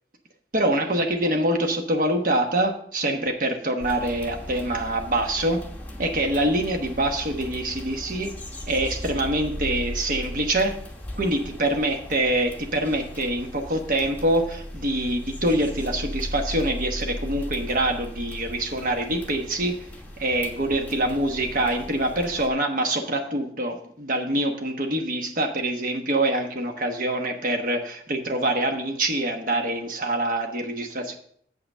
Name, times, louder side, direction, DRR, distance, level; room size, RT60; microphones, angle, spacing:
voice 1, 0.5-5.6 6.0-8.3 8.7-10.8 11.2-19.9 20.2-31.1, right 1 dB, 45° right, 4 dB, 1.2 m, -25 dB
sound 1, 3.8-22.5, left 1 dB, 10° left, 1.2 m, -37 dB
7.8 x 5.7 x 5.5 m, 0.63 s
head